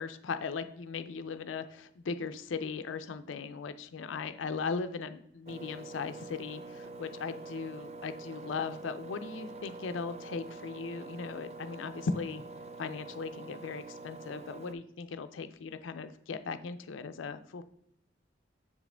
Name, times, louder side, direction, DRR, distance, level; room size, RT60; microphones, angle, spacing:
voice 1, 0.0-12.4 12.8-17.6, left 5 dB, 85° left, 11 dB, 0.4 m, -38 dB
Engine, 5.5-14.7, right 3 dB, 35° right, 0.3 m, -46 dB
6.7 x 4.8 x 3.3 m, 0.76 s
head